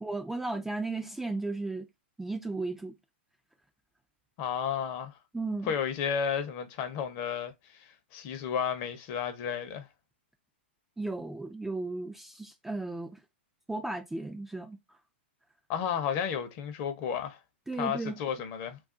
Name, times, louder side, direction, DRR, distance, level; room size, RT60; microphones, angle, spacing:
voice 1, 0.0-1.9 2.2-2.9 5.3-5.7 11.0-13.2 13.7-14.8 17.7-18.2, right 2 dB, 5° right, 0.3 m, -35 dB
voice 2, 4.4-5.2 5.6-9.9 15.7-17.4 17.8-18.8, left 7 dB, 40° left, 0.7 m, -32 dB
2.4 x 2.3 x 3.6 m
hypercardioid pair, 130°, 6 cm